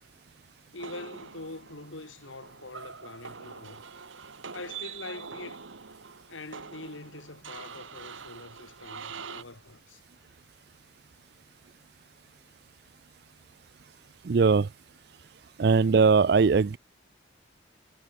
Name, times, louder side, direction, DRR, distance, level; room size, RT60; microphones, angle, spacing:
voice 1, 0.7-3.8 4.5-5.7 6.3-10.0, left 2 dB, 90° left, 2.6 m, -44 dB
sound 1, 0.8-9.4, right 6 dB, 85° right, 1.4 m, -44 dB
voice 2, 14.2-14.7 15.6-16.8, right 5 dB, 55° right, 0.4 m, -20 dB
head